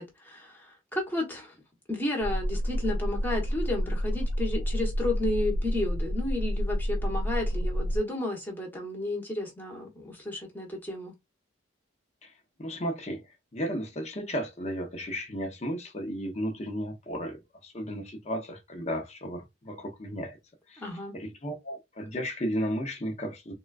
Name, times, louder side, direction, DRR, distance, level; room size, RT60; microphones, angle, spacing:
voice 1, 0.0-1.5 1.9-11.1 20.8-21.2, left 2 dB, 10° left, 1.0 m, -32 dB
sound 1, 2.2-8.0, equal, 80° left, 0.4 m, -29 dB
voice 2, 12.6-13.2 13.5-20.4 20.7-20.8 21.1-23.5, equal, 35° left, 0.7 m, -34 dB
3.6 x 2.3 x 2.4 m
head